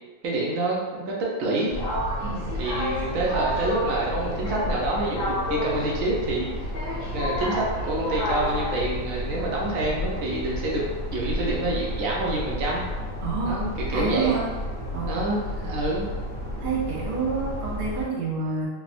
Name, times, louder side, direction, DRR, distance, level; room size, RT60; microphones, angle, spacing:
voice 1, 0.2-1.7 2.5-6.7 7.0-10.8 11.1-12.8 13.5-14.4 15.1-16.1, right 2 dB, 85° right, -3 dB, 1.0 m, -27 dB
sound 1, 1.7-18.1, left 1 dB, 85° left, 1.0 m, -30 dB
voice 2, 13.2-14.5 14.9-15.2 16.6-18.7, right 4 dB, 50° right, -5 dB, 0.7 m, -28 dB
3.3 x 2.1 x 2.4 m, 1.3 s
omnidirectional pair, 1.4 m